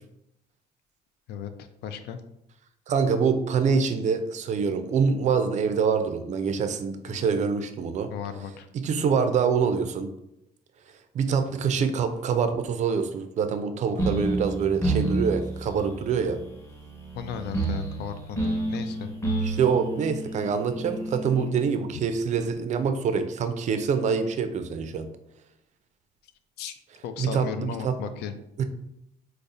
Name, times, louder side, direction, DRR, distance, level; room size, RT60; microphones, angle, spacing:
voice 1, 1.3-2.2 7.1-7.2 8.1-8.7 17.1-19.1 26.6-26.8 27.0-28.3, left 7 dB, 75° left, 9 dB, 0.4 m, -36 dB
voice 2, 2.9-8.1 8.7-10.1 11.1-16.4 19.4-25.1 27.2-27.9 28.6-28.7, right 6 dB, 45° right, 8 dB, 0.4 m, -25 dB
sound 1, 14.0-21.5, right 2 dB, 15° left, 0.8 m, -30 dB
4.7 x 2.0 x 2.7 m, 0.80 s
cardioid pair, 110°, 17 cm